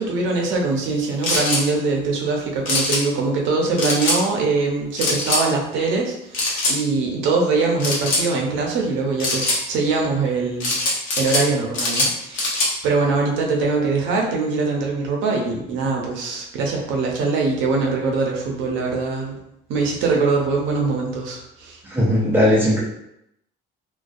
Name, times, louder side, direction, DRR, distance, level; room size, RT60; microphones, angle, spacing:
voice 1, 0.0-10.7 11.2-19.4 19.7-21.8, right 3 dB, 80° right, 0 dB, 0.6 m, -22 dB
sound 1, 1.2-1.6 2.7-3.0 3.8-4.2 5.0-5.4 6.3-6.8 7.8-8.2 9.2-9.6 10.6-11.5 11.7-12.7, left 2 dB, 80° left, 0.7 m, -22 dB
voice 2, 21.8-22.8, left 1 dB, 10° right, -8 dB, 0.4 m, -18 dB
2.3 x 2.2 x 2.5 m, 0.80 s
cardioid pair, 175°, 20 cm